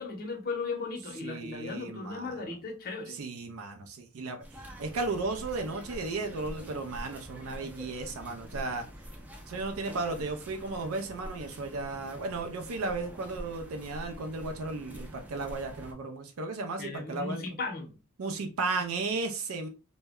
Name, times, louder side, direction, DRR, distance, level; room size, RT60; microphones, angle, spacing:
voice 1, 0.0-3.2 16.8-18.0, left 4 dB, 45° left, 0.7 m, -36 dB
voice 2, 1.2-2.4 3.1-4.4 4.8-8.9 9.5-17.4 18.2-19.7, right 3 dB, 70° right, 0.5 m, -35 dB
sound 1, 4.4-15.9, equal, 5° right, 0.5 m, -45 dB
2.1 x 2.0 x 3.4 m
head